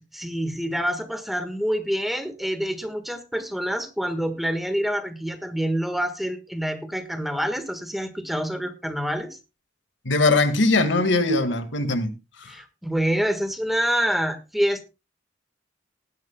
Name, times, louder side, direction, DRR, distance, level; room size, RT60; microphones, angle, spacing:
voice 1, 0.1-9.4 12.5-14.9, equal, ahead, 1.5 m, -27 dB
voice 2, 10.1-12.1 12.4-12.5, left 2 dB, 85° left, 2.0 m, -21 dB
19.0 x 10.5 x 2.3 m
head